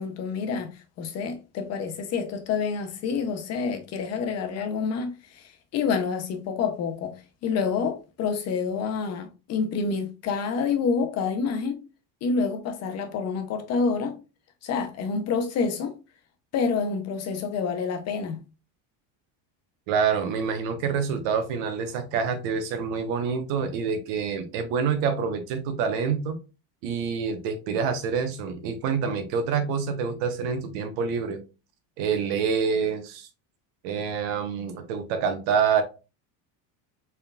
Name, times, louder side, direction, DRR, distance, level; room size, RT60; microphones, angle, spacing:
voice 1, 0.0-7.2 7.4-11.8 12.2-14.2 14.6-16.0 16.5-18.4, left 5 dB, 40° left, 0.6 m, -28 dB
voice 2, 19.9-26.4 26.8-31.4 32.0-33.3 33.8-35.8, right 6 dB, 80° right, 1.1 m, -27 dB
4.3 x 3.7 x 2.3 m
cardioid pair, 170°, 43 cm